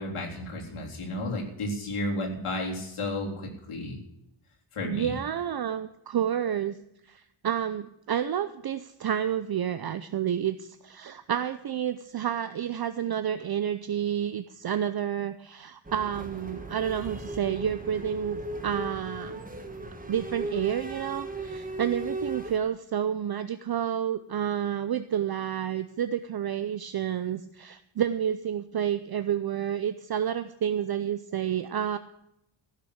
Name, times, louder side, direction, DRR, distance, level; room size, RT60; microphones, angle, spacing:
voice 1, 0.0-4.0 4.7-5.1, left 1 dB, 80° left, 0 dB, 3.7 m, -32 dB
voice 2, 4.8-6.8 7.1-19.4 20.1-32.0, right 9 dB, 50° right, 11 dB, 0.6 m, -30 dB
sound 1, 15.9-22.6, right 2 dB, 15° right, 1.4 m, -37 dB
15.0 x 6.8 x 8.6 m, 0.79 s
wide cardioid pair, 160°, 50 cm